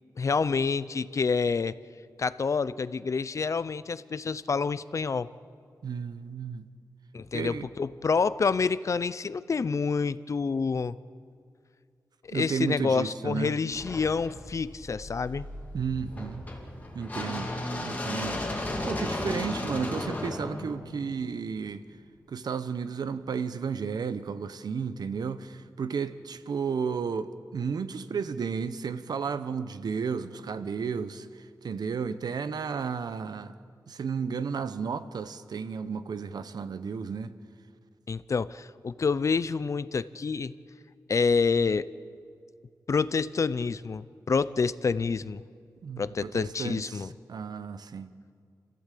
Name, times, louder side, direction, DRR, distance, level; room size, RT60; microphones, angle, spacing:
voice 1, 0.2-1.8 2.2-5.3 7.1-11.0 12.2-15.5 38.1-40.5 41.1-41.9 42.9-45.4 46.0-47.1, left 5 dB, 50° left, 0.6 m, -28 dB
voice 2, 5.8-6.7 7.3-7.7 12.3-13.6 15.7-16.4 16.9-17.5 17.8-21.9 22.3-33.5 33.9-37.3 45.8-48.1, right 6 dB, 75° right, 1.0 m, -33 dB
sound 1, 13.7-21.7, left 1 dB, 25° left, 3.2 m, -35 dB
28.5 x 15.0 x 8.5 m
wide cardioid pair, 115°, 7 cm